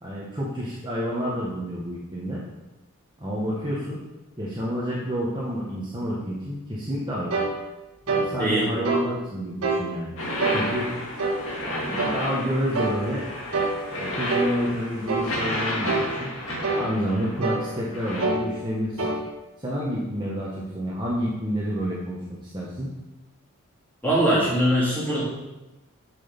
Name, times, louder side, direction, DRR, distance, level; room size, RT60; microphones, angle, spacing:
voice 1, 0.0-2.4 3.2-4.0 4.4-7.3 8.1-10.1 10.5-10.9 11.6-13.3 13.9-16.3 16.7-19.0 19.6-22.9, equal, 20° right, -6 dB, 1.4 m, -29 dB
sound 1, 7.3-7.5 8.1-8.3 8.8-9.1 9.6-9.9 10.4-10.6 11.2-11.4 12.0-12.2 12.7-13.0 13.5-13.8 14.3-14.5 15.1-15.3 15.9-16.1 16.6-16.9 17.4-17.7 18.2-18.4 19.0-19.2, right 3 dB, 75° right, 1.5 m, -25 dB
sound 2, 10.2-18.2, left 1 dB, 60° left, 2.2 m, -32 dB
voice 2, 24.0-25.2, right 1 dB, 10° left, -8 dB, 3.2 m, -21 dB
7.6 x 6.3 x 5.3 m, 1.0 s
head